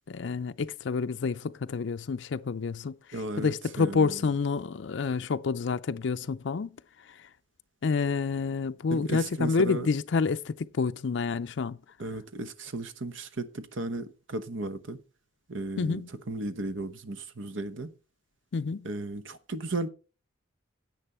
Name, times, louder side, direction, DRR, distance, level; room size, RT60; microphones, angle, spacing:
voice 1, 0.1-3.0 3.4-6.7 7.1-7.2 7.8-11.8 15.8-16.1 18.5-18.9, left 4 dB, 65° left, 0.4 m, -28 dB
voice 2, 3.1-4.2 8.9-9.9 12.0-15.0 15.5-17.9 18.8-19.9, right 2 dB, 75° right, 1.0 m, -35 dB
10.0 x 8.3 x 4.3 m
head